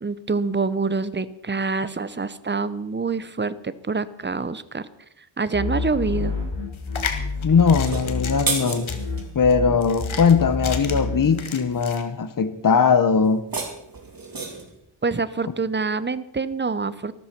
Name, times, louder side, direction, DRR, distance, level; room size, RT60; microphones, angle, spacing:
voice 1, 0.0-4.9 5.4-6.3 15.0-17.2, right 4 dB, 25° right, 15 dB, 0.7 m, -26 dB
sound 1, 5.5-8.6 8.9-11.4, left 3 dB, 65° left, 5.6 m, -29 dB
sound 2, 6.7-12.0, left 6 dB, 80° left, 1.7 m, -34 dB
voice 2, 7.4-8.9 9.3-13.4, left 6 dB, 45° left, 12 dB, 1.0 m, -19 dB
sound 3, 7.8-9.3 13.2-14.8, right 3 dB, 45° right, 3.0 m, -31 dB
13.5 x 13.0 x 5.9 m, 0.79 s
wide cardioid pair, 110°, 47 cm